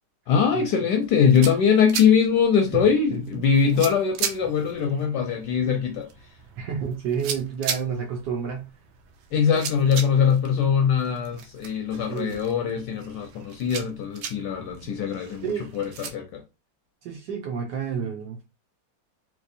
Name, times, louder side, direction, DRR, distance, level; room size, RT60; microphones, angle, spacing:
voice 1, 0.3-6.1 9.3-16.4, left 7 dB, 70° left, 1.1 m, -22 dB
sound 1, 1.0-16.1, right 7 dB, 90° right, 1.4 m, -38 dB
voice 2, 3.1-3.8 6.6-8.8 12.1-12.4 15.4-15.7 17.0-18.5, right 7 dB, 70° right, 1.3 m, -30 dB
3.4 x 3.0 x 2.6 m
omnidirectional pair, 2.1 m